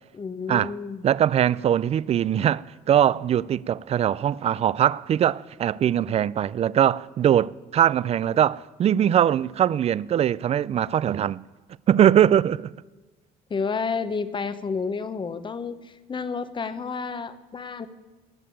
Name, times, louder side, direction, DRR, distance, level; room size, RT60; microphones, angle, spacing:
voice 1, 0.1-1.0 13.5-17.9, left 5 dB, 30° left, 0.9 m, -30 dB
voice 2, 1.0-11.4 11.9-12.7, right 10 dB, 40° right, 0.4 m, -21 dB
17.0 x 6.7 x 8.8 m
cardioid pair, 110°, 17 cm